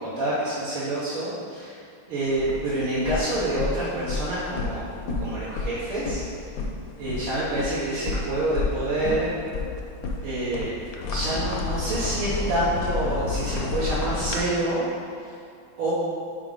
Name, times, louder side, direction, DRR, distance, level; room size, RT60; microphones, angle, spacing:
voice 1, 0.0-1.7 2.1-4.8 5.2-6.2 7.0-9.3 10.2-10.7 11.1-14.9 15.8-15.9, right 1 dB, 85° right, -10 dB, 2.0 m, -27 dB
sound 1, 2.2-14.4, left 3 dB, 65° left, 0.9 m, -31 dB
5.0 x 4.8 x 5.2 m, 2.3 s
omnidirectional pair, 2.3 m